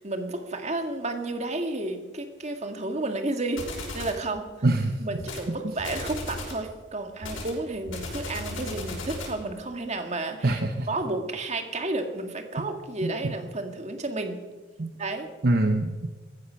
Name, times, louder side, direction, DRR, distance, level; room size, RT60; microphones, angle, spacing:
voice 1, 0.0-4.5 5.0-10.6 10.9-14.4 15.0-15.3, right 2 dB, 35° right, 5 dB, 1.8 m, -32 dB
sound 1, 3.6-4.2 5.2-5.5 5.8-6.6 7.2-9.4, left 2 dB, 80° left, 5.7 m, -35 dB
voice 2, 4.6-5.0 5.5-5.7 10.4-10.9 13.0-13.3 14.8-14.9 15.4-16.1, right 2 dB, 50° right, 5 dB, 0.9 m, -25 dB
17.5 x 15.0 x 5.7 m, 1.3 s
head